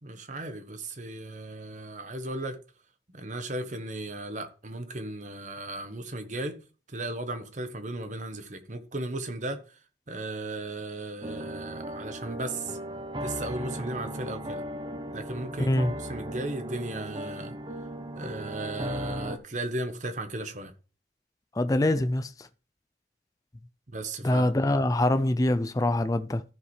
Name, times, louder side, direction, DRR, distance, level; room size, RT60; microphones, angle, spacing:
voice 1, 0.0-2.6 3.1-6.6 6.9-9.6 10.1-12.8 13.2-14.6 15.1-17.5 18.1-20.7 23.9-24.7, right 2 dB, 45° right, 1.1 m, -36 dB
sound 1, 11.2-19.4, right 1 dB, 25° right, 0.7 m, -37 dB
voice 2, 15.6-15.9 21.6-22.5 24.2-26.4, left 1 dB, 20° left, 0.4 m, -24 dB
14.0 x 5.1 x 3.2 m
head